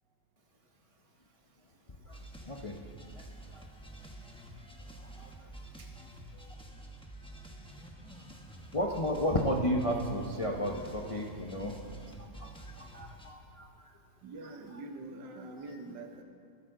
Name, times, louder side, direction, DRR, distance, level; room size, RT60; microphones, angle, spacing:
sound 1, 2.1-13.3, right 1 dB, 5° left, 0.8 m, -49 dB
voice 1, 2.4-2.8 3.2-3.3 3.5-3.6 5.2-5.3 8.7-11.8 12.2-12.5 12.8-13.7, equal, 45° left, 0 dB, 0.4 m, -32 dB
voice 2, 14.2-16.2, right 2 dB, 70° right, 6 dB, 1.5 m, -44 dB
14.0 x 13.5 x 3.8 m, 2.4 s
omnidirectional pair, 2.0 m